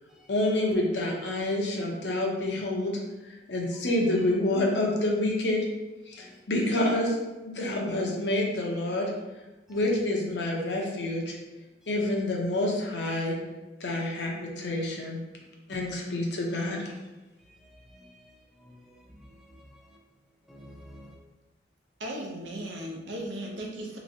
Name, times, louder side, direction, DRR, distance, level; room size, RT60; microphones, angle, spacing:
voice 1, 0.3-3.0 3.3-5.6 6.1-7.2 7.4-9.1 9.7-11.4 11.9-13.3 13.8-15.2 15.7-16.9, left 1 dB, 70° left, 0.8 m, -28 dB
voice 2, 17.9-18.3 18.6-20.0 20.5-21.2, equal, ahead, 0.5 m, -52 dB
voice 3, 22.0-24.0, right 1 dB, 80° right, 0.8 m, -36 dB
3.4 x 3.0 x 2.7 m
head